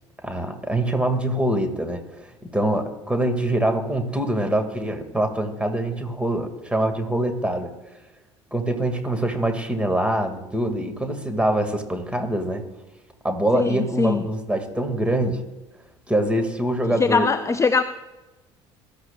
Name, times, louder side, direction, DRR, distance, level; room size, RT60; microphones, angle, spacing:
voice 1, 0.2-7.7 8.5-12.6 13.2-15.4 16.1-17.3, right 1 dB, 10° right, 6 dB, 2.1 m, -24 dB
voice 2, 13.5-14.2 17.0-17.8, left 4 dB, 20° left, 11 dB, 0.5 m, -21 dB
21.0 x 12.5 x 2.4 m, 1.1 s
figure-of-eight pair, 60°, 15 cm